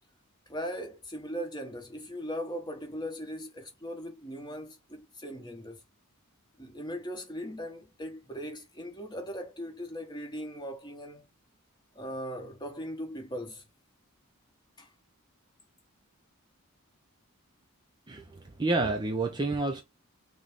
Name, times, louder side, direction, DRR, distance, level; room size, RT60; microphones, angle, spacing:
voice 1, 0.5-5.8 6.6-11.2 11.9-13.6 14.8-14.9, equal, 20° left, 1.0 m, -39 dB
voice 2, 18.1-19.8, right 2 dB, 20° right, 0.4 m, -29 dB
6.2 x 2.1 x 3.4 m
head